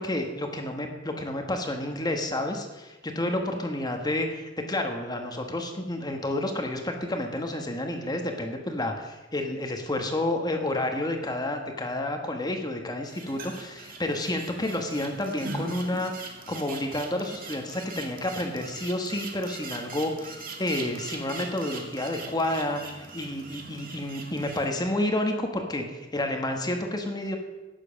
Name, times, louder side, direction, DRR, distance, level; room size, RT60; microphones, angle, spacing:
voice 1, 0.0-16.1 16.5-27.4, left 1 dB, 20° left, 4 dB, 1.5 m, -30 dB
sound 1, 13.0-24.7, right 3 dB, 45° right, 2.1 m, -41 dB
12.5 x 9.7 x 6.6 m, 1.1 s
head